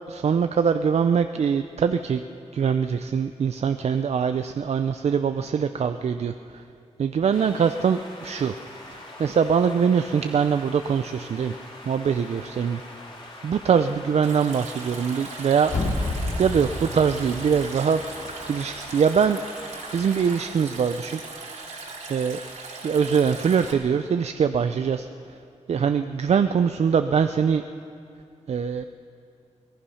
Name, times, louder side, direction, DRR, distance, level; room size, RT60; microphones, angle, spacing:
voice 1, 0.1-2.2 2.5-6.6 7.0-8.6 8.9-11.6 11.9-12.8 13.4-15.7 16.4-19.4 19.9-21.2 22.1-22.4 22.8-25.1 25.7-27.6 28.5-28.8, right 6 dB, 60° right, 9 dB, 0.5 m, -23 dB
sound 1, 7.3-20.5, left 2 dB, 45° left, 3.7 m, -43 dB
Stream, 14.2-23.7, right 3 dB, 90° right, 3.3 m, -39 dB
sound 2, 15.6-18.6 18.9-19.0, left 2 dB, 75° left, 3.3 m, -30 dB
24.0 x 19.0 x 5.7 m, 2.5 s
wide cardioid pair, 175°, 12 cm